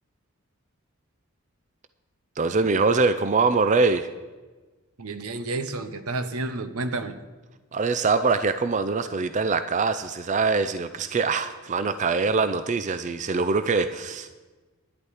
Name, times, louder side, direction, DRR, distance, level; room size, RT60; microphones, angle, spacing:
voice 1, 2.4-4.1 7.7-14.3, right 4 dB, 35° right, 11 dB, 0.4 m, -23 dB
voice 2, 5.0-7.2, right 2 dB, 80° right, 11 dB, 0.9 m, -30 dB
11.0 x 10.5 x 4.8 m, 1.3 s
head